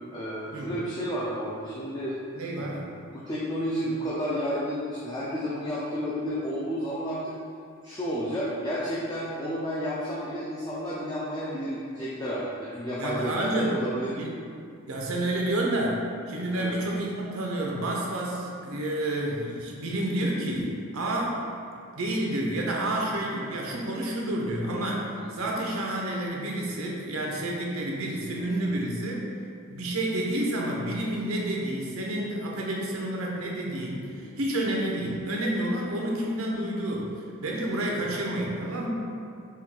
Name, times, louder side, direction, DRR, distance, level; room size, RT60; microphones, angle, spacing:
voice 1, 0.1-2.2 2.6-2.7 3.1-7.3 7.8-14.1 16.6-16.8 25.2-25.5 28.4-28.7 34.2-34.4, equal, 20° left, -7 dB, 0.4 m, -31 dB
voice 2, 2.3-2.8 13.0-13.8 14.2-14.3 14.9-21.4 22.0-29.3 29.7-37.1 37.4-38.9, right 1 dB, 85° right, -2 dB, 0.7 m, -29 dB
4.3 x 2.3 x 3.7 m, 2.3 s
head